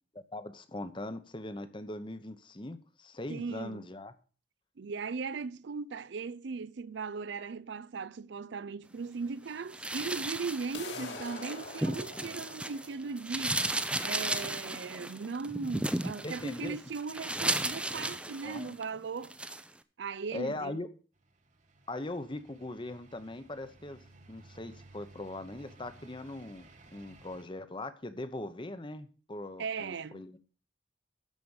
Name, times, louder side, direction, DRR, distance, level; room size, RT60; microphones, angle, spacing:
voice 1, 0.3-4.1 11.0-11.2 16.2-16.8 18.4-18.7 20.3-20.9 21.9-24.0 24.3-30.4, left 2 dB, 25° left, 0.9 m, -40 dB
voice 2, 3.3-3.8 4.8-13.6 14.0-19.3 20.0-20.8 29.6-30.4, right 5 dB, 60° right, 0.4 m, -38 dB
sound 1, 9.7-12.9 13.2-18.8 19.2-19.6, right 1 dB, 5° right, 0.5 m, -35 dB
sound 2, 10.7-16.7, left 3 dB, 60° left, 2.4 m, -47 dB
sound 3, 21.1-27.4, right 2 dB, 40° right, 1.3 m, -57 dB
12.5 x 5.1 x 7.2 m
head